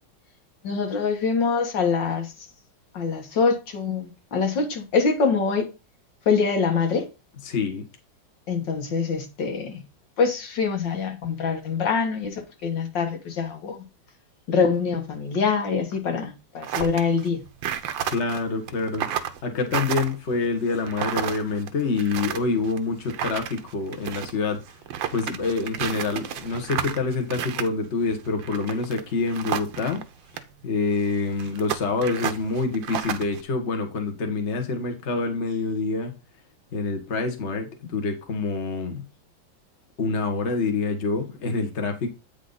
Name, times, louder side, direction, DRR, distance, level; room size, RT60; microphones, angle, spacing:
voice 1, 0.6-2.3 2.9-5.7 6.3-7.1 8.5-9.8 10.2-13.8 14.5-17.4, left 5 dB, 75° left, 2.1 m, -24 dB
voice 2, 7.4-7.8 18.0-24.8 25.1-30.0 30.3-36.1 36.7-39.0 40.0-42.1, left 4 dB, 40° left, 1.5 m, -27 dB
sound 1, 16.6-30.0 30.3-30.4 31.0-33.4, right 9 dB, 85° right, 1.5 m, -31 dB
8.6 x 5.1 x 4.0 m
omnidirectional pair, 2.0 m